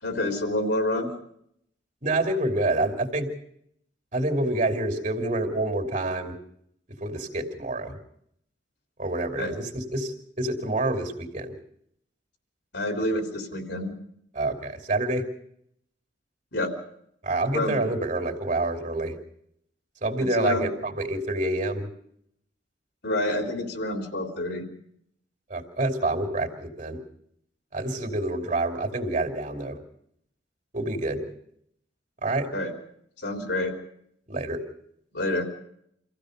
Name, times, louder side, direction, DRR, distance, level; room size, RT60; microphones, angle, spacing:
voice 1, 0.0-1.1 9.4-9.5 12.7-14.0 16.5-16.7 17.5-17.8 20.2-20.7 23.0-24.6 32.5-32.7 33.2-33.7 35.1-35.4, left 1 dB, 70° left, 5 dB, 3.6 m, -28 dB
voice 2, 2.0-3.3 4.1-6.3 7.0-8.0 9.0-11.5 14.3-15.2 17.2-19.2 20.0-21.9 25.5-27.0 27.7-29.8 30.7-31.2 32.2-32.5 34.3-34.6, right 2 dB, 40° right, 5 dB, 3.0 m, -27 dB
26.0 x 15.5 x 6.7 m, 0.72 s
head